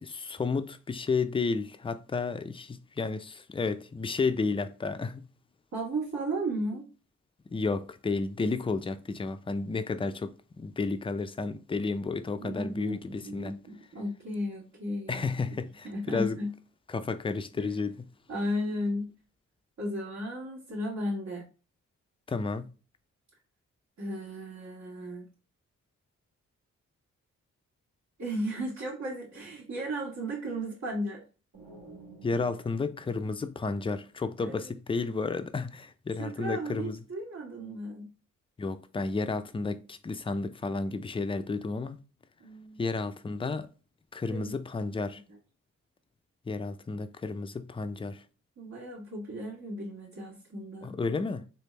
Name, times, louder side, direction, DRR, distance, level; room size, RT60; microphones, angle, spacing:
voice 1, 0.0-5.3 7.5-13.5 15.1-16.4 16.9-18.1 22.3-22.7 32.2-37.0 38.6-42.0 42.8-43.7 44.1-45.2 46.5-48.2 50.8-51.4, left 4 dB, 15° left, 0.4 m, -32 dB
voice 2, 5.7-6.9 12.4-15.3 15.8-16.5 17.6-17.7 18.3-19.1 19.8-21.5 24.0-25.3 28.2-31.2 34.4-34.7 36.2-38.1 42.4-42.9 44.3-44.5 48.6-50.9, equal, 55° right, 1.5 m, -35 dB
sound 1, 31.5-34.3, right 3 dB, 75° right, 1.8 m, -52 dB
3.3 x 2.5 x 3.2 m
supercardioid pair, 45°, 34 cm